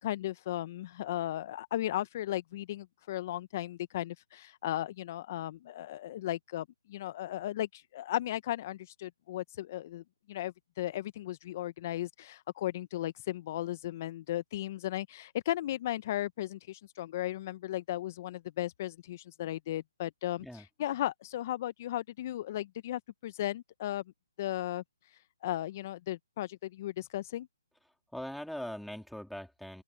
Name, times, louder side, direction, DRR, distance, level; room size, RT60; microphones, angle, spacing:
voice 1, 0.0-24.0 24.4-24.8 25.1-27.5, left 13 dB, 35° left, 0.9 m, -36 dB
voice 2, 28.1-29.8, equal, ahead, 3.7 m, -41 dB
open air
hypercardioid pair, 150°, 2 cm